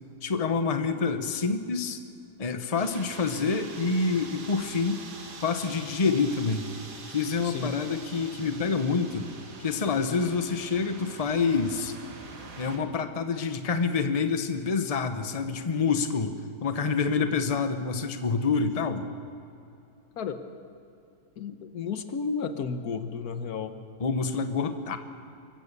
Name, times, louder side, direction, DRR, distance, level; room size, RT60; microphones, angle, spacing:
voice 1, 0.2-2.0 2.4-5.0 5.4-6.7 7.1-9.3 9.6-11.9 12.6-16.3 16.6-19.1 24.0-25.0, left 5 dB, 25° left, 8 dB, 1.0 m, -27 dB
sound 1, 2.8-12.8, right 3 dB, 60° right, 2.0 m, -44 dB
voice 2, 7.4-7.8 20.2-20.4 21.4-23.7, left 5 dB, 75° left, 9 dB, 1.5 m, -32 dB
25.0 x 15.5 x 6.8 m, 2.6 s
omnidirectional pair, 1.7 m